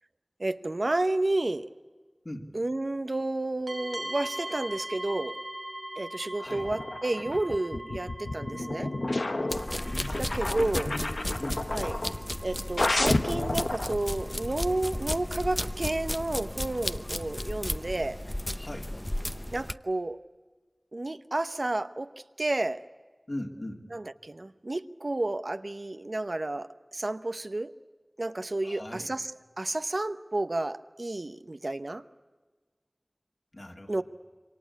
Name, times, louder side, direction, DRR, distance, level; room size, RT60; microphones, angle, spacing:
voice 1, 0.4-1.7 2.5-5.4 6.0-8.9 10.2-11.0 11.7-12.0 12.4-18.2 19.5-20.2 20.9-22.1 22.4-22.8 23.9-27.7 28.2-29.3 29.6-32.0 33.9-34.0, right 2 dB, 70° right, 0.9 m, -31 dB
sound 1, 3.7-18.0, right 1 dB, 25° right, 1.2 m, -43 dB
voice 2, 6.4-6.7 10.1-10.2 10.6-10.8 11.4-11.6 18.6-18.9 23.3-23.8 28.6-29.1 33.5-34.0, left 1 dB, 55° left, 3.0 m, -39 dB
sound 2, 6.5-12.2 12.8-13.9, left 2 dB, 80° left, 0.9 m, -31 dB
sound 3, 9.5-19.7, left 1 dB, 25° left, 0.8 m, -34 dB
27.5 x 24.0 x 8.6 m
wide cardioid pair, 45°, 0 cm